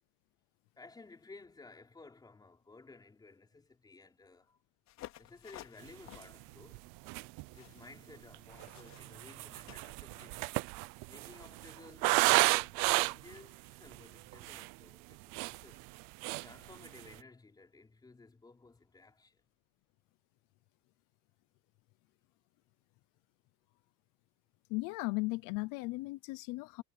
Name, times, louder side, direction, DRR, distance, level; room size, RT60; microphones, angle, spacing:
voice 1, 0.8-4.6 5.2-6.9 7.5-10.6 11.1-15.9 16.4-19.4, left 3 dB, 10° left, 4.8 m, -56 dB
sound 1, 4.9-10.4, left 14 dB, 55° left, 4.4 m, -55 dB
sound 2, 6.2-6.3 6.7-6.8 7.1-7.5 8.3-13.4 13.9-14.0 14.3-14.7 15.1-16.0 16.2-16.5 16.8-17.1, right 24 dB, 80° right, 0.6 m, -31 dB
voice 2, 24.7-26.8, left 24 dB, 80° left, 0.7 m, -36 dB
cardioid pair, 175°, 32 cm